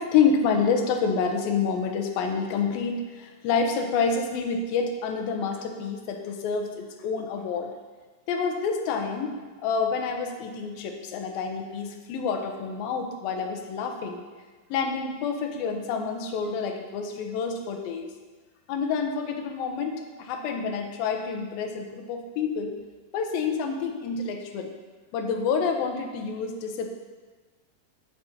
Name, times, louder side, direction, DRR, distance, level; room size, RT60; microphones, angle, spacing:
voice 1, 0.0-7.7 8.3-14.2 14.7-18.1 18.7-22.8 23.1-24.7 25.1-26.9, left 5 dB, 80° left, 4 dB, 2.7 m, -28 dB
14.0 x 6.0 x 4.2 m, 1.3 s
omnidirectional pair, 4.3 m